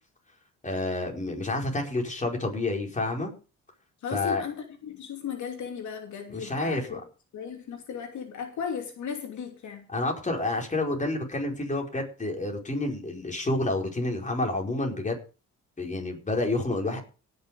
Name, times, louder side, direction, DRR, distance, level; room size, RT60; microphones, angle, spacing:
voice 1, 0.6-3.3 4.1-4.4 6.3-7.0 9.9-15.2 15.8-17.0, left 2 dB, 25° left, 1 dB, 4.9 m, -29 dB
voice 2, 4.0-7.0 7.3-9.9, left 7 dB, 70° left, 4 dB, 3.0 m, -36 dB
18.0 x 6.9 x 5.1 m, 0.34 s
cardioid pair, 90°, 30 cm